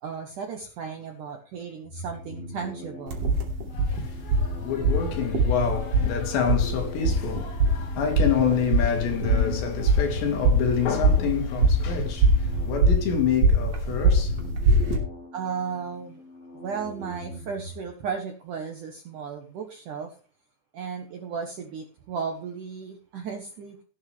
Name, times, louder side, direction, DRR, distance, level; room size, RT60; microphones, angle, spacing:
voice 1, 0.0-3.2 15.3-16.2 16.5-20.2 20.7-23.8, right 6 dB, 75° right, 1.9 m, -35 dB
sound 1, 1.8-17.9, equal, 15° left, 3.8 m, -42 dB
sound 2, 3.1-15.0, right 1 dB, 45° right, 3.8 m, -23 dB
voice 2, 3.7-15.0, left 7 dB, 65° left, 4.3 m, -28 dB
17.5 x 8.8 x 3.5 m
omnidirectional pair, 5.6 m